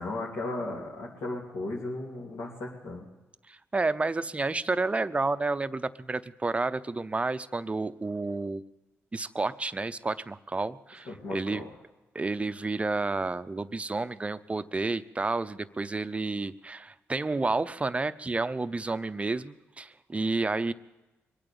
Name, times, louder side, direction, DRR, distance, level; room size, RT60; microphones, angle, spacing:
voice 1, 0.0-3.0 11.1-11.7, left 2 dB, 70° left, -5 dB, 2.8 m, -36 dB
voice 2, 3.5-8.6 9.1-11.6 12.1-20.7, right 3 dB, 25° right, 13 dB, 0.7 m, -30 dB
23.0 x 8.9 x 7.0 m, 1.1 s
cardioid pair, 65°, 5 cm